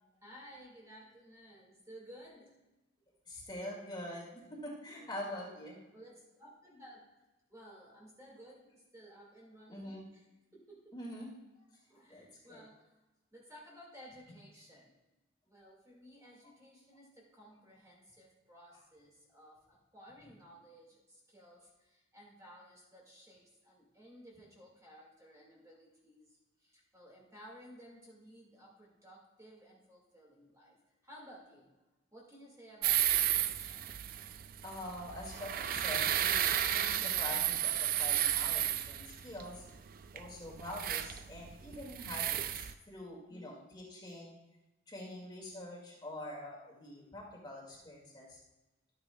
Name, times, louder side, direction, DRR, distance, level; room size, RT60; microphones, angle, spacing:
voice 1, 0.2-2.6 4.9-5.5 5.9-7.1 7.5-10.2 10.5-11.0 11.9-12.9 13.3-15.0 15.5-30.8 31.0-31.7 32.1-33.9 43.3-43.7 45.0-45.3, equal, 15° right, -4 dB, 1.8 m, -56 dB
voice 2, 3.3-5.8 9.7-10.1 10.9-11.4 12.1-12.6 34.6-39.6 40.1-44.4 44.9-48.4, left 1 dB, 20° left, -4 dB, 1.9 m, -45 dB
sound 1, 32.8-42.7, right 11 dB, 45° right, 0.3 m, -33 dB
12.0 x 8.7 x 2.2 m, 1.1 s
head